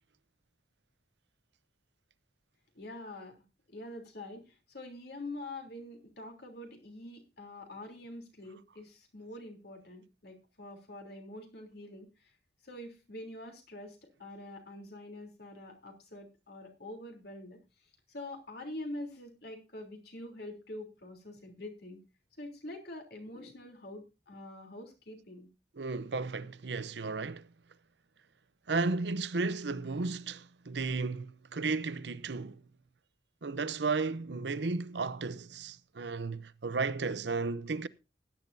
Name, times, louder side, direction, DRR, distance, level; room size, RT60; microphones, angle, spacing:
voice 1, 2.7-3.4 3.7-12.3 12.6-17.6 18.1-22.0 22.4-25.5, left 1 dB, 60° left, 3.3 m, -45 dB
voice 2, 25.8-27.5 28.7-32.6 33.4-37.9, right 4 dB, 75° right, 0.7 m, -34 dB
16.0 x 10.5 x 2.7 m
head